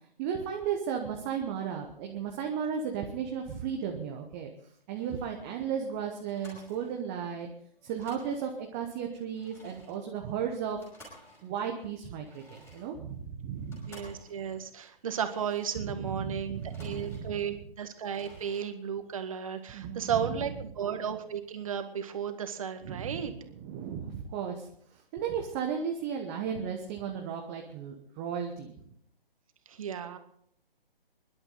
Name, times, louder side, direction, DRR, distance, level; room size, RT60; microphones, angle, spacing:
voice 1, 0.2-4.5 4.9-7.5 7.8-10.8 11.4-13.9 15.8-17.4 19.7-20.3 22.8-23.2 23.6-28.7, right 7 dB, 15° right, 2 dB, 1.0 m, -35 dB
sound 1, 4.9-5.4 5.8-5.9 6.2-7.5 7.7-8.8 9.2-16.0 16.4-17.6 17.9-18.7, equal, 10° left, 5.4 m, -56 dB
voice 2, 13.9-23.3 29.7-30.2, right 8 dB, 35° right, 8 dB, 1.7 m, -34 dB
24.0 x 11.5 x 3.9 m, 0.67 s
figure-of-eight pair, 140°, 30 cm